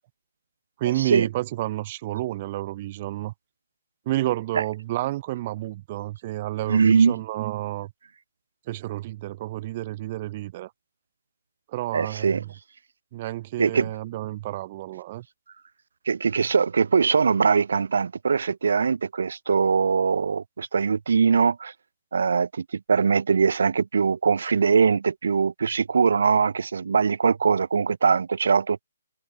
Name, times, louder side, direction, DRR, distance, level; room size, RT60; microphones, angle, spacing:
voice 1, 0.8-3.3 4.1-7.9 8.7-10.7 11.7-12.5 13.1-15.2, right 16 dB, 35° right, 0.8 m, -30 dB
voice 2, 6.7-7.2 11.9-12.4 13.6-13.9 16.1-21.7 22.1-28.8, right 5 dB, 65° right, 1.1 m, -22 dB
figure-of-eight pair, 135°, 0 cm